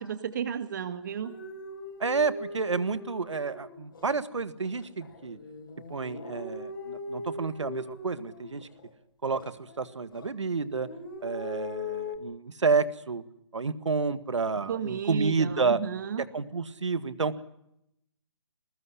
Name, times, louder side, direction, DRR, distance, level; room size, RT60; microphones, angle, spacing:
voice 1, 0.0-1.3 14.7-16.2, right 7 dB, 40° right, 9 dB, 1.9 m, -33 dB
sound 1, 1.2-4.1 4.7-8.9 9.3-10.3 10.6-12.2, left 3 dB, 50° left, 4.5 m, -40 dB
voice 2, 2.0-5.4 5.9-8.7 9.2-10.9 11.2-13.2 13.5-15.8 16.3-17.3, right 4 dB, 80° right, 13 dB, 1.8 m, -30 dB
20.5 x 20.0 x 9.8 m, 0.79 s
hypercardioid pair, 160°, 15 cm